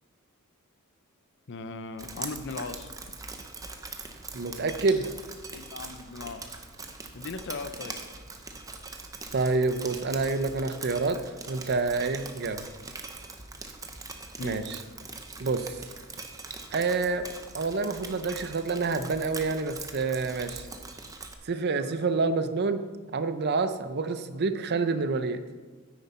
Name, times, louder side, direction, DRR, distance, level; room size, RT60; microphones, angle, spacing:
voice 1, 1.5-2.9 5.5-6.6 7.1-8.0 14.4-14.6, left 3 dB, 55° left, 10 dB, 0.6 m, -38 dB
Drip, 2.0-21.3, right 3 dB, 15° right, 0.8 m, -42 dB
voice 2, 4.3-5.1 9.3-12.6 14.4-14.8 15.4-15.8 16.7-17.3 17.5-20.6 21.4-22.8 23.1-25.4, right 3 dB, 50° right, 10 dB, 0.6 m, -28 dB
9.7 x 9.2 x 4.3 m, 1.4 s
head